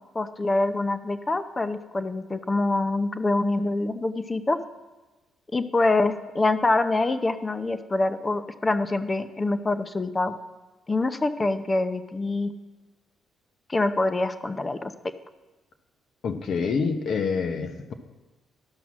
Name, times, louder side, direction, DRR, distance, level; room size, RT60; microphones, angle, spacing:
voice 1, 0.1-4.6 5.5-10.4 10.9-12.5 13.7-14.9, left 2 dB, 25° left, 10 dB, 0.7 m, -25 dB
voice 2, 16.2-17.9, left 5 dB, 60° left, 7 dB, 1.0 m, -27 dB
12.0 x 5.9 x 6.2 m, 1.2 s
cardioid pair, 90°, 0 cm